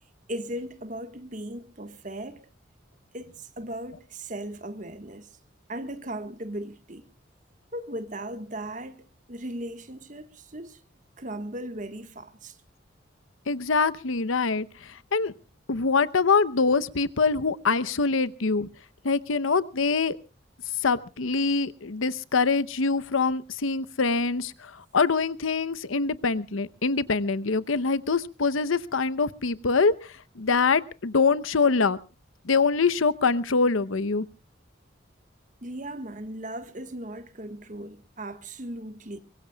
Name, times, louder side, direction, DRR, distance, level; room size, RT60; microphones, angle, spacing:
voice 1, 0.3-2.4 3.1-5.3 5.7-7.0 7.7-10.8 11.2-12.6 35.6-39.2, right 1 dB, 40° right, 1.4 m, -37 dB
voice 2, 13.5-15.3 15.7-18.7 19.0-20.2 20.8-32.0 32.4-34.3, left 4 dB, 90° left, 0.8 m, -24 dB
23.5 x 22.0 x 2.3 m
head